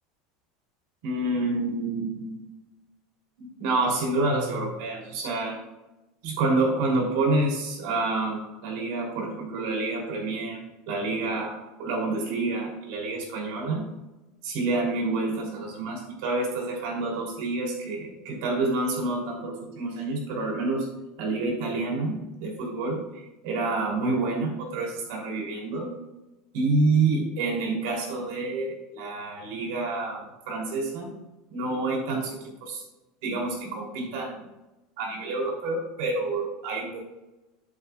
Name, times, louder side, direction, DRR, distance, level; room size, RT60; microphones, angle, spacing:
voice 1, 1.0-2.4 3.4-5.6 6.2-13.8 14.4-20.9 21.2-25.9 26.5-31.1 31.5-32.8 33.2-34.4 35.0-37.0, right 3 dB, 60° right, -1 dB, 3.2 m, -28 dB
11.0 x 8.2 x 2.4 m, 1.0 s
supercardioid pair, 165°, 0 cm